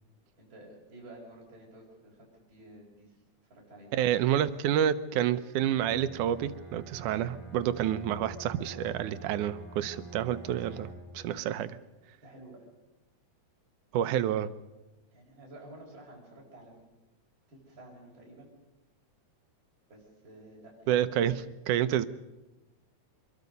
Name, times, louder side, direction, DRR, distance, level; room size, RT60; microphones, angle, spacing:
voice 1, 0.4-3.2 3.5-4.4 12.2-12.7 15.1-16.8 17.5-18.5 19.9-21.3, right 1 dB, 40° right, -4 dB, 5.6 m, -51 dB
voice 2, 3.9-10.9 11.1-11.7 13.9-14.5 20.9-21.3 21.7-22.1, right 10 dB, 85° right, 13 dB, 2.4 m, -28 dB
Bowed string instrument, 5.5-11.2, right 2 dB, 10° left, 6.2 m, -46 dB
25.5 x 22.0 x 5.4 m, 1.0 s
omnidirectional pair, 3.5 m